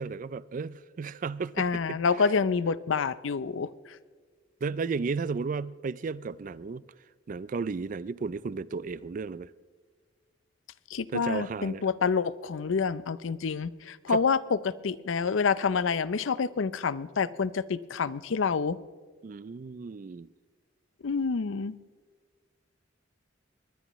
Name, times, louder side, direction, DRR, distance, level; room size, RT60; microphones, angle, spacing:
voice 1, 0.0-2.0 4.6-6.8 7.3-9.5 11.1-11.8 14.1-14.2 19.2-20.3, right 4 dB, 40° right, 0.4 m, -34 dB
voice 2, 1.6-4.0 10.9-18.8 21.0-21.8, left 5 dB, 80° left, 0.5 m, -28 dB
22.5 x 19.5 x 3.1 m
head